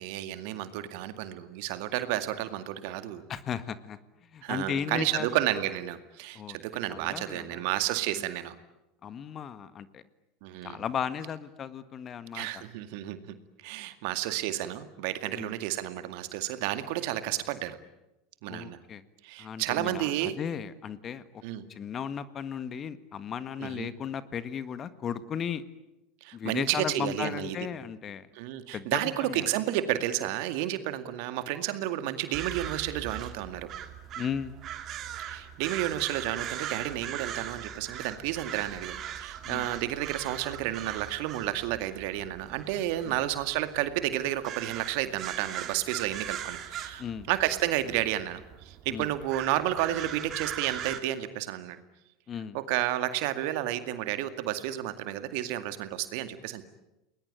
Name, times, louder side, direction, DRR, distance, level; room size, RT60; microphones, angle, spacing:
voice 1, 0.0-3.3 4.4-8.6 10.4-10.8 12.3-13.3 13.6-17.8 18.4-18.8 19.2-20.4 21.4-21.6 23.6-23.9 26.2-27.6 28.3-33.7 35.2-51.8 52.5-56.6, right 13 dB, 65° right, 10 dB, 2.1 m, -31 dB
voice 2, 3.3-4.0 4.3-5.4 6.3-6.6 6.9-7.6 9.0-10.0 10.6-12.6 15.3-15.5 18.5-19.0 19.4-21.3 21.7-25.6 26.3-28.3 28.7-29.5 34.2-34.5 39.4-39.7 43.0-43.1 47.0-47.3 48.9-49.1 52.3-52.6, left 8 dB, 35° left, 13 dB, 1.7 m, -35 dB
sound 1, 32.3-51.0, right 10 dB, 45° right, 2.8 m, -40 dB
30.0 x 20.5 x 9.1 m, 0.93 s
hypercardioid pair, 80°, 0 cm